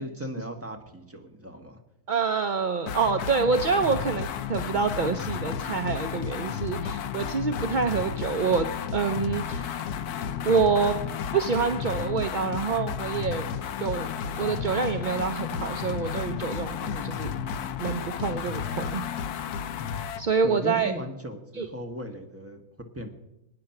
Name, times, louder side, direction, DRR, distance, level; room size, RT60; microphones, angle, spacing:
voice 1, 0.0-1.8 20.4-23.1, equal, 10° right, 3 dB, 1.6 m, -37 dB
voice 2, 2.1-9.9 10.4-11.0 11.3-13.5 13.8-14.1 14.4-17.3 17.8-19.0 20.2-20.9 21.6-21.7, right 5 dB, 50° right, 7 dB, 0.6 m, -27 dB
sound 1, 2.9-20.3, left 7 dB, 80° left, 1.3 m, -32 dB
23.0 x 9.7 x 5.9 m, 0.89 s
omnidirectional pair, 1.6 m